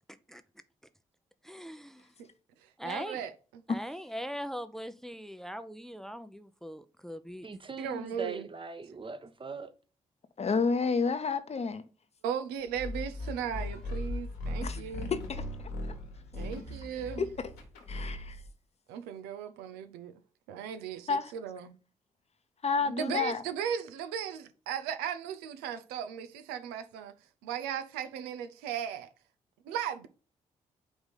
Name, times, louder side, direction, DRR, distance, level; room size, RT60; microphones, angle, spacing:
voice 1, 1.4-2.1 2.8-3.2 3.7-7.5, equal, ahead, 0.6 m, -41 dB
voice 2, 2.8-3.6 7.8-8.5 12.2-15.1 16.3-17.2 18.9-20.1 20.5-21.8 22.8-27.1 27.4-29.1 29.7-30.1, right 8 dB, 75° right, 0.6 m, -37 dB
voice 3, 7.4-9.7, right 4 dB, 30° right, 1.0 m, -41 dB
voice 4, 10.4-11.8 14.6-14.8 15.1-15.4 17.2-17.3 17.9-18.4 21.1-21.3 22.6-23.4, left 5 dB, 40° left, 0.9 m, -29 dB
sound 1, 12.7-18.5, left 1 dB, 80° left, 1.4 m, -38 dB
4.9 x 3.5 x 5.4 m
hypercardioid pair, 40°, 17 cm